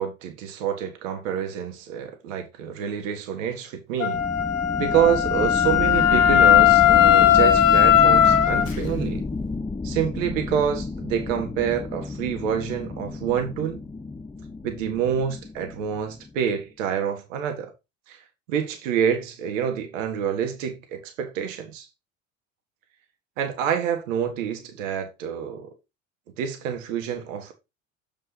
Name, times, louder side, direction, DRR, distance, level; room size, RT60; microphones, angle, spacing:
voice 1, 0.0-4.2 4.8-9.2 9.8-13.8 14.6-17.7 18.1-18.2 18.5-21.9 23.4-25.7 26.4-27.5, right 8 dB, 70° right, 1.6 m, -27 dB
Wind instrument woodwind instrument, 4.0-8.7, left 10 dB, 85° left, 0.9 m, -17 dB
sound 1, 4.1-16.4, left 3 dB, 10° left, 0.9 m, -31 dB
7.8 x 4.6 x 4.0 m
hypercardioid pair, 75°, 40 cm